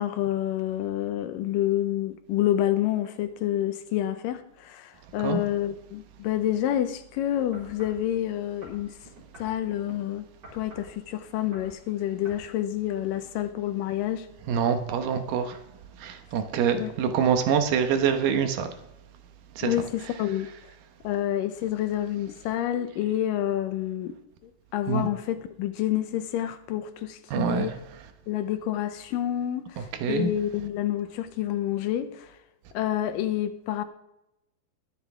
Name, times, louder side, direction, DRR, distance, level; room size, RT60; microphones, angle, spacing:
voice 1, 0.0-9.0 9.4-10.3 10.5-14.3 16.8-16.9 19.6-20.5 21.0-24.1 24.4-27.7 28.3-32.3 32.7-33.8, left 12 dB, 80° left, 2.3 m, -28 dB
voice 2, 5.0-5.4 14.5-18.9 19.5-20.4 24.9-25.1 27.3-28.1 29.8-30.3, right 7 dB, 75° right, 2.6 m, -27 dB
sound 1, 7.5-8.0 8.6-10.0 10.4-10.9 11.4-11.8 12.2-12.5 13.1-13.2, right 1 dB, 30° right, 4.9 m, -47 dB
21.0 x 7.8 x 3.5 m
omnidirectional pair, 4.1 m